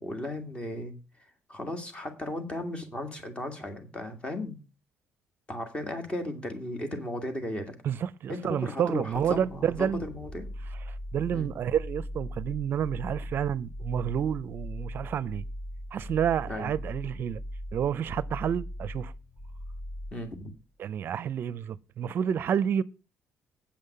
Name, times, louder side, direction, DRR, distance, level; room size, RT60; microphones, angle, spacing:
voice 1, 0.0-1.0 1.5-4.6 5.5-7.7 8.3-10.5 11.3-11.5 16.5-16.7 20.1-20.5, left 1 dB, 25° left, 2.0 m, -35 dB
voice 2, 7.8-10.0 11.1-15.4 15.9-17.4 17.7-19.1 20.8-22.8, right 9 dB, 50° right, 0.5 m, -29 dB
sound 1, 9.1-20.6, equal, 45° left, 4.1 m, -40 dB
8.7 x 5.6 x 6.6 m
cardioid pair, 125°, 5 cm